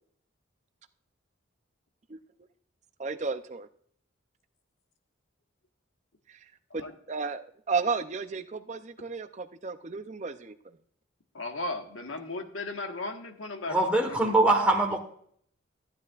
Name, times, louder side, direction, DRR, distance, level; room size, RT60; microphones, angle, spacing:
voice 1, 3.0-3.7 6.7-10.6, right 4 dB, 35° right, 9 dB, 0.5 m, -33 dB
voice 2, 11.3-14.4, left 2 dB, 85° left, 5 dB, 1.4 m, -36 dB
voice 3, 13.7-15.0, right 2 dB, 5° right, 0 dB, 1.3 m, -23 dB
14.5 x 9.5 x 2.4 m, 0.62 s
head